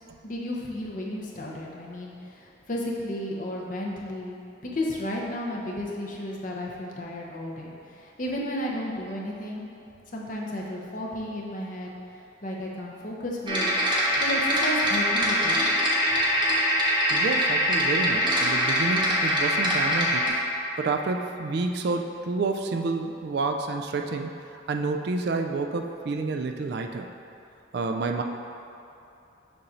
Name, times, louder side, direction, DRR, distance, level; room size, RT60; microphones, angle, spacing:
voice 1, 0.2-9.7 10.1-11.9 12.4-13.7 14.2-15.6, left 1 dB, 40° left, -2 dB, 0.7 m, -33 dB
sound 1, 13.5-20.3, equal, 25° right, 0.8 m, -23 dB
voice 2, 17.1-20.4 20.8-24.3 24.7-27.1 27.7-28.2, right 3 dB, 55° right, 4 dB, 0.3 m, -29 dB
6.9 x 2.6 x 5.5 m, 2.8 s
head